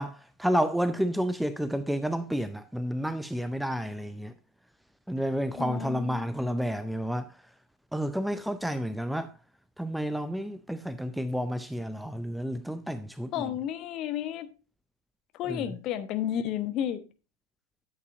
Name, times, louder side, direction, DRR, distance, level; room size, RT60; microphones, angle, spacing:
voice 1, 0.0-4.3 5.1-7.3 7.9-9.3 9.8-13.3 15.5-15.7, equal, ahead, 0.5 m, -30 dB
voice 2, 5.6-6.7 13.3-14.5 15.4-17.0, left 10 dB, 35° left, 1.0 m, -32 dB
13.0 x 8.0 x 2.5 m
figure-of-eight pair, 90°, 0 cm